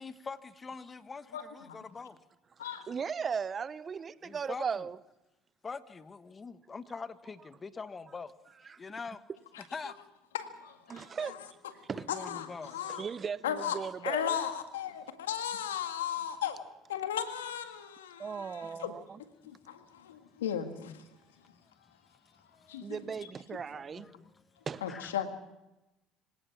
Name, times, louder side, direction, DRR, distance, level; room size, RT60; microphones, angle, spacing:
voice 1, 0.0-2.2 4.1-4.9 5.6-8.3 8.6-9.2 9.7-10.0 11.9-12.8 18.6-18.9 19.4-19.5 20.8-21.3 21.5-21.9 22.3-23.2 23.7-24.3 24.9-25.1, left 4 dB, 30° left, 1.4 m, -44 dB
voice 2, 1.3-1.8 2.6-2.9 10.3-11.4 12.1-13.0 13.4-13.8 14.0-16.6 16.9-18.9 19.4-20.9 22.7-22.9 24.8-25.3, left 9 dB, 90° left, 1.8 m, -36 dB
voice 3, 2.9-5.0 8.7-8.8 10.9-11.4 11.9-12.1 12.9-14.4 18.2-19.2 22.8-24.1 24.7-24.9, right 6 dB, 35° right, 0.7 m, -37 dB
26.0 x 17.5 x 5.9 m
hypercardioid pair, 70°, 0 cm